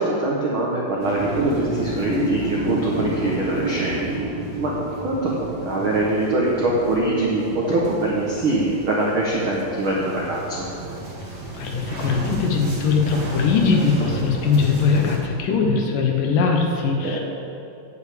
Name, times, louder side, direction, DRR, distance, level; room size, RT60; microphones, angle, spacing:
voice 1, 0.0-4.3 4.6-4.7 5.0-10.7 17.0-17.2, right 2 dB, 75° right, -4 dB, 1.2 m, -23 dB
sound 1, 1.0-15.2, right 2 dB, 40° right, 1.6 m, -30 dB
voice 2, 11.5-17.2, left 5 dB, 70° left, 1 dB, 2.5 m, -20 dB
9.4 x 7.2 x 8.5 m, 2.6 s
omnidirectional pair, 4.3 m